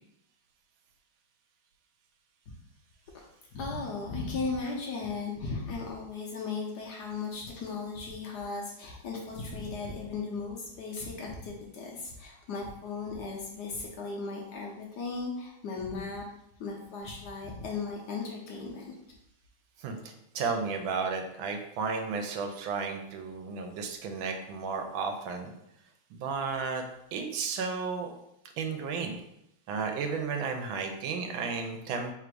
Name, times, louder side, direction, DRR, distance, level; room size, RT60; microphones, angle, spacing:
voice 1, 3.5-16.2 16.6-18.9, left 4 dB, 65° left, -1 dB, 1.1 m, -36 dB
voice 2, 19.8-25.5 26.1-26.8 27.1-28.1 28.6-29.2 29.7-32.1, right 5 dB, 80° right, 4 dB, 1.4 m, -33 dB
3.4 x 2.5 x 4.5 m, 0.80 s
omnidirectional pair, 2.2 m